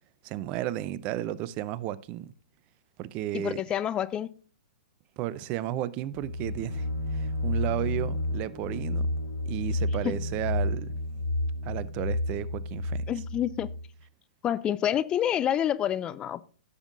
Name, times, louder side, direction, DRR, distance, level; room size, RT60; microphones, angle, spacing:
voice 1, 0.2-2.3 3.0-3.6 5.2-9.1 9.5-10.9 11.6-13.1, right 13 dB, 30° right, 0.5 m, -33 dB
voice 2, 3.3-4.3 10.0-10.1 13.1-13.7 14.4-16.4, left 10 dB, 20° left, 0.4 m, -28 dB
sound 1, 6.1-13.9, left 1 dB, 70° left, 2.3 m, -31 dB
16.0 x 7.1 x 2.6 m
figure-of-eight pair, 115°, 4 cm